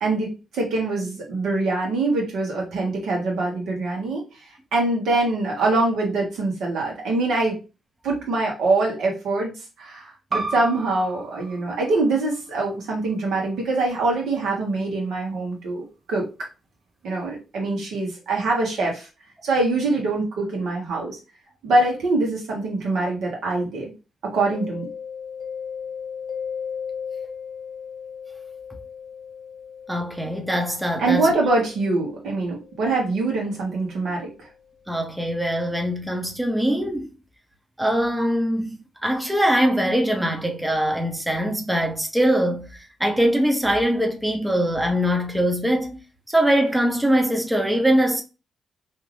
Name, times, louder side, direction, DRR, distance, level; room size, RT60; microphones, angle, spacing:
voice 1, 0.0-4.2 4.7-7.6 8.0-9.5 9.8-16.2 17.0-19.1 19.4-21.2 21.6-23.9 24.2-24.9 31.0-34.5, right 2 dB, 75° right, 1.1 m, -24 dB
sound 1, 10.3-15.5, right 3 dB, 45° right, 0.6 m, -36 dB
Mallet percussion, 24.5-34.1, left 7 dB, 60° left, 0.5 m, -37 dB
voice 2, 29.9-31.3 34.9-37.1 37.8-42.7 43.0-46.0 46.3-48.2, equal, 5° right, 0.7 m, -22 dB
2.7 x 2.5 x 3.2 m
supercardioid pair, 55°, 0 cm